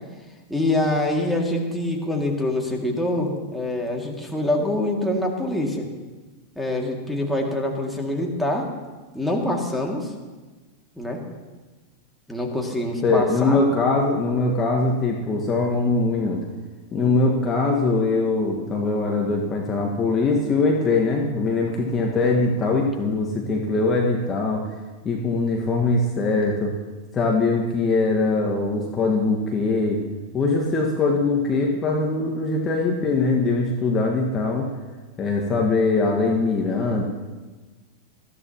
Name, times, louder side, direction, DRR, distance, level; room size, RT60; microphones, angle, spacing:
voice 1, 0.5-5.9 6.6-8.7 9.1-10.1 11.0-11.2 12.3-13.6, left 1 dB, ahead, -1 dB, 2.4 m, -25 dB
voice 2, 13.0-16.4 16.9-24.6 25.0-26.7 27.1-30.0 30.3-34.7 35.2-37.0, left 3 dB, 20° left, -1 dB, 1.7 m, -22 dB
20.5 x 14.5 x 3.1 m, 1.3 s
figure-of-eight pair, 90°, 0 cm